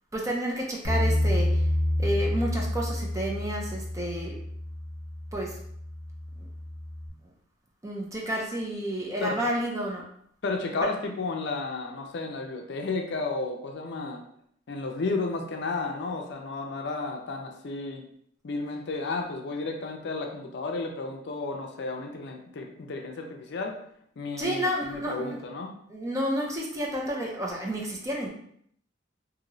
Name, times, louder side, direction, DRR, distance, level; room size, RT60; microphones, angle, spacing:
voice 1, 0.1-1.5 2.0-4.3 5.3-5.5 7.8-10.0 24.4-25.4 25.9-28.3, equal, 15° right, -1 dB, 0.5 m, -30 dB
Bass guitar, 0.8-7.1, left 1 dB, 10° left, 1.4 m, -29 dB
voice 2, 10.4-14.2 14.7-18.0 18.4-23.8 24.2-25.7, left 3 dB, 65° left, 3 dB, 0.5 m, -32 dB
3.0 x 2.7 x 2.6 m, 0.67 s
head